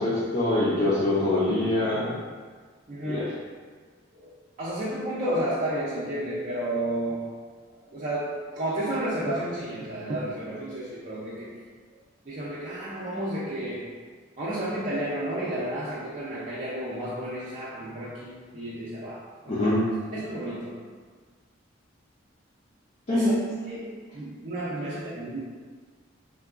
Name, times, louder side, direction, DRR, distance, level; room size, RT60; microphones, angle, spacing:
voice 1, 0.0-2.2 3.0-3.2 19.5-19.8 23.1-23.3, left 2 dB, 40° left, -9 dB, 0.5 m, -24 dB
voice 2, 2.9-3.3 4.2-4.3 4.6-7.3 7.7-11.6 12.3-13.9 14.4-19.7 20.1-20.8 23.1-23.3 23.6-25.4, right 1 dB, 40° right, -8 dB, 0.4 m, -32 dB
3.6 x 2.3 x 2.4 m, 1.5 s
head